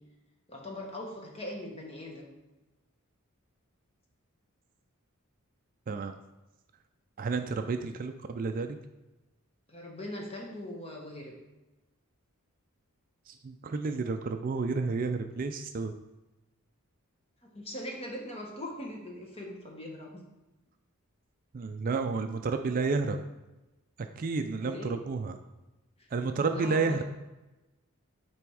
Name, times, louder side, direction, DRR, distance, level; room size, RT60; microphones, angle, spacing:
voice 1, 0.5-2.4 9.7-11.3 17.4-20.2 24.6-24.9 26.0-26.1 26.5-27.0, left 1 dB, 25° left, 0 dB, 1.2 m, -41 dB
voice 2, 7.2-8.8 13.3-15.9 21.5-23.2 24.2-25.4 26.1-27.0, right 4 dB, 40° right, 7 dB, 0.3 m, -31 dB
8.7 x 3.4 x 4.7 m, 1.1 s
head